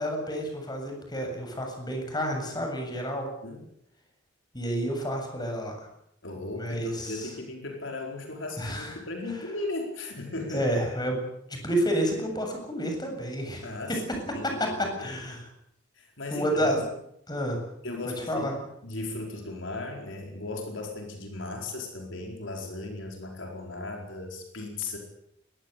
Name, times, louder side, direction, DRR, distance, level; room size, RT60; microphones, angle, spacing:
voice 1, 0.0-3.3 4.5-5.7 6.6-7.3 8.6-8.9 10.5-11.2 11.6-14.2 14.4-15.4 16.3-16.8 17.3-17.6 18.3-18.5, equal, 20° left, 3 dB, 7.3 m, -29 dB
voice 2, 6.2-10.7 13.6-15.1 16.0-16.6 17.8-18.5 18.8-25.0, left 2 dB, 70° left, 2 dB, 4.7 m, -37 dB
23.0 x 19.5 x 8.4 m, 0.76 s
head